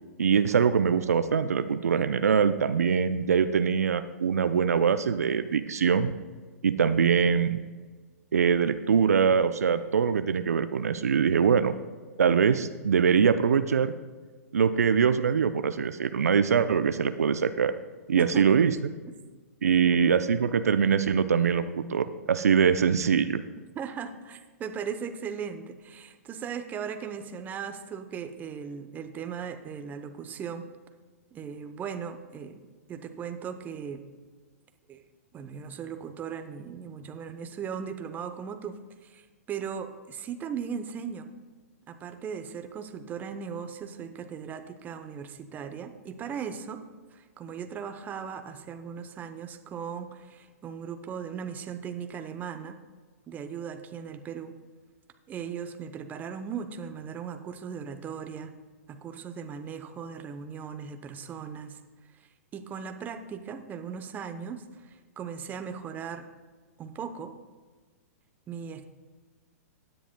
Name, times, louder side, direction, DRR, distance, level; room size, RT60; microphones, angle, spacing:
voice 1, 0.2-6.1 6.6-7.6 8.3-11.7 12.2-13.9 14.5-17.7 18.1-18.7 19.6-23.4, right 6 dB, 80° right, 11 dB, 0.5 m, -23 dB
voice 2, 18.1-18.6 23.7-30.7 31.3-32.6 32.9-34.0 34.9-35.0 35.3-41.3 41.9-46.8 47.1-52.8 53.3-54.6 55.3-58.5 58.9-61.8 62.1-66.3 66.8-67.3 68.5-68.8, right 7 dB, 20° right, 8 dB, 0.8 m, -38 dB
16.5 x 10.0 x 2.2 m, 1.4 s
hypercardioid pair, 120°, 8 cm